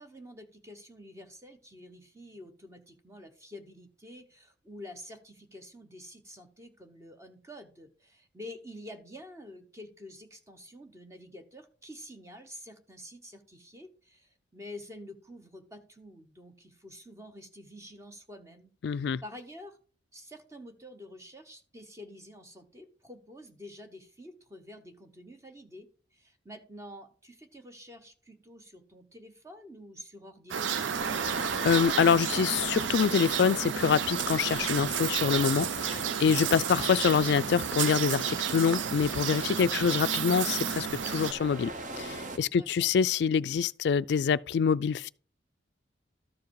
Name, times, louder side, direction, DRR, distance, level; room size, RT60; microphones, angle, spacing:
voice 1, 0.0-19.8 20.1-31.0 42.5-42.9, left 1 dB, 15° right, 1.0 m, -48 dB
voice 2, 18.8-19.2 31.3-41.7 42.0-45.1, left 6 dB, 60° left, 0.3 m, -26 dB
sound 1, 30.5-41.3, right 7 dB, 85° right, 0.5 m, -31 dB
sound 2, 30.9-42.4, right 2 dB, 40° right, 0.8 m, -44 dB
13.0 x 4.8 x 4.7 m
head